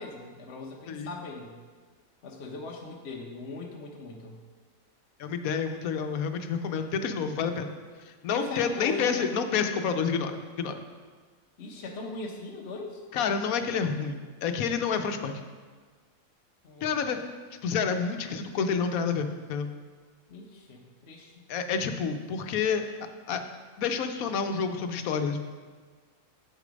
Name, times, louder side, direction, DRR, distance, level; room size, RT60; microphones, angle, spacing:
voice 1, 0.0-1.5 2.2-4.4 6.8-6.9 8.3-9.3 11.6-13.0 16.6-16.9 20.3-21.4, left 3 dB, 55° left, -1 dB, 1.1 m, -39 dB
voice 2, 5.2-7.7 8.2-10.7 13.1-15.3 16.8-17.2 17.6-19.7 21.5-22.9 23.3-23.4 23.8-25.4, left 6 dB, 85° left, 7 dB, 1.2 m, -29 dB
8.4 x 6.4 x 5.1 m, 1.5 s
omnidirectional pair, 1.5 m